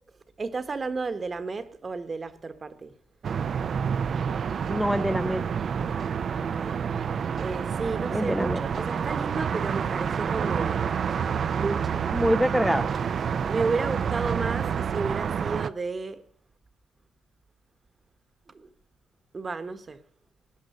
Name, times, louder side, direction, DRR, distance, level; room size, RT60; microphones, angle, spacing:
voice 1, 0.4-3.0 6.3-6.8 7.4-10.9 11.5-12.1 13.5-16.2 18.5-18.7 19.3-20.0, right 4 dB, 35° right, 1.2 m, -32 dB
sound 1, 3.2-15.7, right 7 dB, 55° right, 0.6 m, -28 dB
voice 2, 4.7-5.4 8.1-8.6 12.1-12.9, equal, ahead, 0.5 m, -25 dB
18.0 x 10.5 x 6.7 m
cardioid pair, 90°, 0 cm